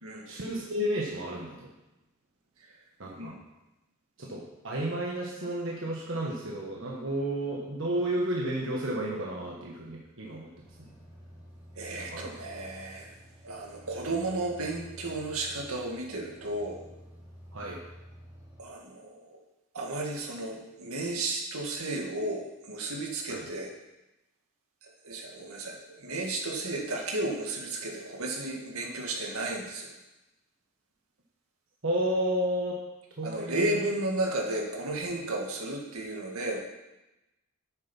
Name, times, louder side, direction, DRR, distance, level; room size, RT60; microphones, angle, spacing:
voice 1, 0.3-1.7 3.0-3.3 4.2-10.5 10.8-10.9 12.0-12.4 17.5-17.8 23.3-23.5 31.8-32.8 33.2-33.8, right 1 dB, 60° right, -3 dB, 1.4 m, -32 dB
sound 1, 10.6-18.6, equal, 5° right, 3.6 m, -50 dB
voice 2, 11.8-13.1 13.4-16.8 18.6-19.1 19.7-23.7 25.0-29.9 33.2-36.6, right 2 dB, 80° right, 0 dB, 2.0 m, -33 dB
9.0 x 7.6 x 5.5 m, 0.96 s
head